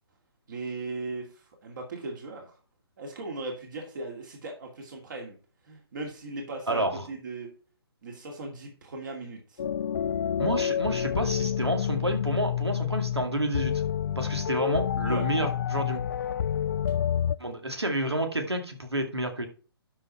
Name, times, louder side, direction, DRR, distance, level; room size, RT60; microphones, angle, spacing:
voice 1, 0.5-2.6 3.0-5.3 5.7-7.5 8.0-9.6 15.0-15.2, right 3 dB, 50° right, 1 dB, 2.5 m, -38 dB
voice 2, 6.7-7.0 10.4-13.7 14.2-16.0 17.4-19.5, right 1 dB, 85° right, 5 dB, 2.2 m, -29 dB
sound 1, 9.6-17.4, left 9 dB, 45° left, 0.4 m, -28 dB
12.0 x 5.0 x 4.3 m, 0.38 s
figure-of-eight pair, 135°, 13 cm